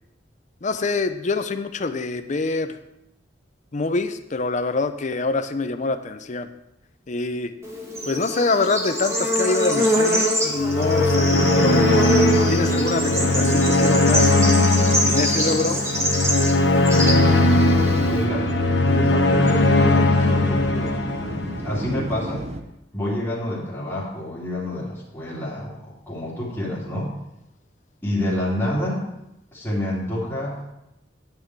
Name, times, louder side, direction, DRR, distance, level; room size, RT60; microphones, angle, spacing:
voice 1, 0.6-2.8 3.7-6.5 7.1-7.5 8.1-11.8 12.5-14.3 15.0-15.8, left 3 dB, 40° left, 9 dB, 0.6 m, -25 dB
Bird / Insect, 7.6-18.2, equal, 15° right, 2.0 m, -24 dB
sound 1, 10.6-21.9, left 2 dB, 70° left, 1.2 m, -19 dB
sound 2, 17.2-22.6, right 1 dB, 35° right, 0.7 m, -33 dB
voice 2, 18.1-18.5 18.9-20.9 21.6-22.4 22.9-27.2 28.0-29.0 29.5-30.7, left 1 dB, 10° left, -10 dB, 2.8 m, -28 dB
9.6 x 9.0 x 4.6 m, 0.85 s
head